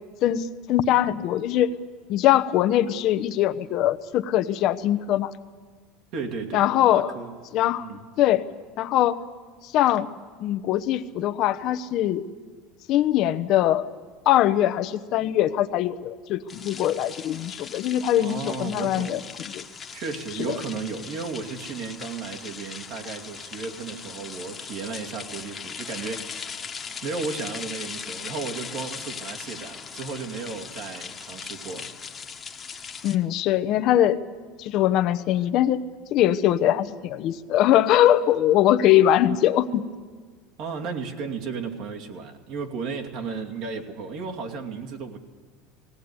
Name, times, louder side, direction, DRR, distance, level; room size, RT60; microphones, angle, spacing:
voice 1, 0.2-1.7 2.1-5.3 6.5-7.1 7.5-7.9 8.2-8.5 8.8-9.2 9.7-10.1 10.4-12.2 12.9-13.9 14.3-19.2 19.5-19.6 20.5-20.6 33.0-34.2 34.6-35.8 36.1-39.8, left 12 dB, 55° left, 12 dB, 0.9 m, -22 dB
voice 2, 6.1-6.6 6.9-7.3 7.8-8.0 18.2-19.4 19.9-26.5 27.0-31.9 40.6-45.2, right 5 dB, 60° right, 2 dB, 2.5 m, -34 dB
sound 1, 16.5-33.2, left 6 dB, 25° left, 1.5 m, -39 dB
18.5 x 17.0 x 9.7 m, 1.6 s
supercardioid pair, 120°, 0 cm